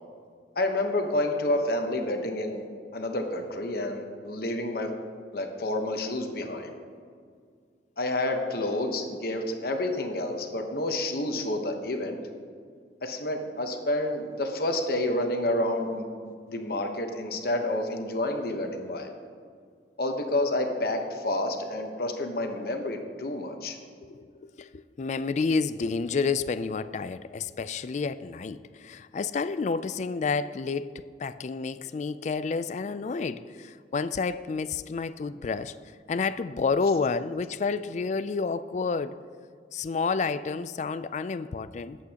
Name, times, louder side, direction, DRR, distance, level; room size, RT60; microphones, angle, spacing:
voice 1, 0.6-2.7 2.9-4.9 5.3-6.7 8.0-12.2 13.0-19.1 20.0-23.8, left 1 dB, 55° left, 1.0 m, -29 dB
voice 2, 24.0-35.8 36.1-39.2 39.7-42.0, left 4 dB, 40° left, 0.3 m, -30 dB
20.0 x 8.3 x 2.9 m
head